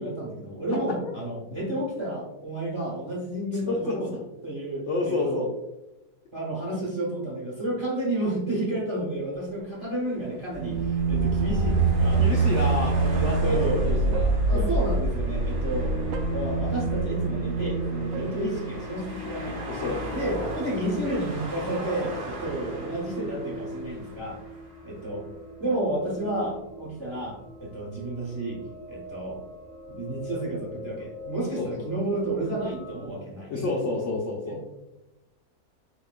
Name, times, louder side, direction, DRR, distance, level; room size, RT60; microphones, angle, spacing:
voice 1, 0.0-4.2 4.4-5.5 6.3-12.2 13.0-13.9 14.5-16.0 16.3-19.6 20.1-24.4 24.8-25.2 25.6-28.6 28.9-29.4 29.9-33.5 34.5-34.6, right 1 dB, 20° right, -5 dB, 1.1 m, -31 dB
voice 2, 3.6-4.0 4.9-5.5 12.2-12.9 13.2-13.6 13.8-14.8 19.7-20.0 31.6-31.9 33.5-34.6, left 3 dB, 65° left, -1 dB, 0.7 m, -29 dB
sound 1, 9.6-25.0, equal, 85° right, 1.6 m, -39 dB
sound 2, 10.5-19.1, right 3 dB, 65° right, 0.9 m, -25 dB
sound 3, 16.0-33.1, left 1 dB, ahead, 0.8 m, -43 dB
4.2 x 3.5 x 2.4 m, 0.94 s
omnidirectional pair, 1.7 m